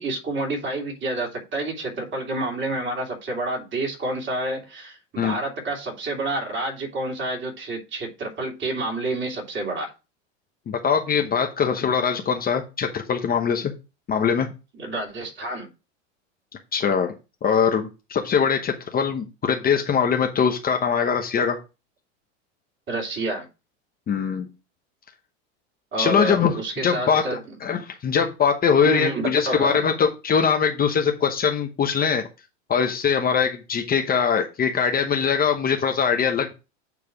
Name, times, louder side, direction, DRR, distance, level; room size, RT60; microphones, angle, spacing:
voice 1, 0.0-9.9 14.7-15.7 22.9-23.5 25.9-27.4 28.8-29.8, right 2 dB, 30° right, 3.1 m, -29 dB
voice 2, 10.7-13.7 14.1-14.5 16.7-17.1 17.4-21.6 24.1-24.5 26.0-27.3 27.6-32.3 32.7-36.5, left 6 dB, 25° left, 0.9 m, -22 dB
8.9 x 3.3 x 4.6 m
supercardioid pair, 120°, 36 cm